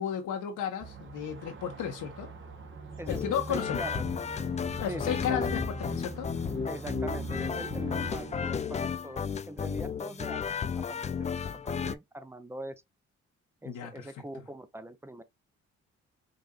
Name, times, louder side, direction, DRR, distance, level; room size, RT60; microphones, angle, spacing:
voice 1, 0.0-2.3 3.1-3.8 4.8-6.3 13.6-14.4, left 8 dB, 80° left, 1.2 m, -34 dB
sound 1, 0.8-8.5, right 3 dB, 40° right, 1.3 m, -42 dB
sound 2, 3.1-11.9, left 6 dB, 25° left, 0.3 m, -33 dB
voice 2, 3.5-4.1 4.9-5.5 6.7-12.7 13.6-15.2, right 1 dB, 10° right, 0.6 m, -42 dB
5.2 x 2.6 x 2.3 m
cardioid pair, 90°, 30 cm